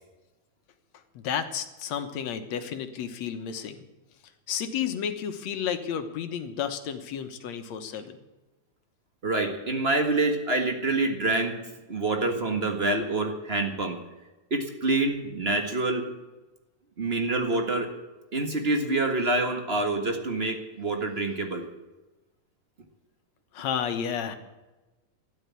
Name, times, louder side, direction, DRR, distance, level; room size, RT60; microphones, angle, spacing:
voice 1, 1.2-3.9 4.5-8.2 23.5-24.4, left 8 dB, 65° left, 8 dB, 2.3 m, -32 dB
voice 2, 9.2-11.5 11.9-14.0 14.5-16.0 17.0-17.9 18.3-21.6, right 2 dB, 35° right, 5 dB, 1.0 m, -26 dB
13.0 x 11.5 x 8.4 m, 1.1 s
omnidirectional pair, 3.7 m